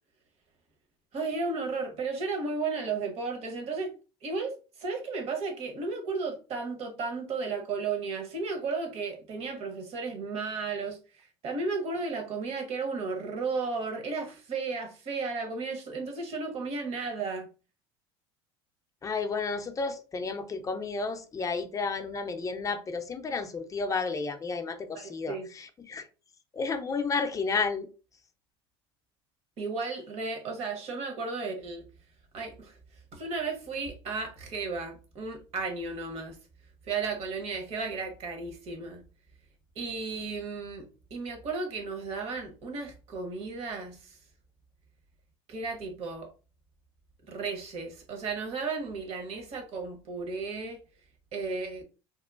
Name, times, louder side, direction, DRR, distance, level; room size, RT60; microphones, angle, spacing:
voice 1, 1.1-3.9 4.2-17.5 24.9-25.5 29.6-31.8 32.3-32.8 33.1-36.4 36.8-39.0 39.8-44.2 45.5-46.3 47.3-50.8 51.3-51.8, right 4 dB, 50° right, 0.9 m, -34 dB
voice 2, 19.0-26.0 26.5-27.9, left 4 dB, 25° left, 0.5 m, -32 dB
2.9 x 2.1 x 2.4 m
hypercardioid pair, 80°, 13 cm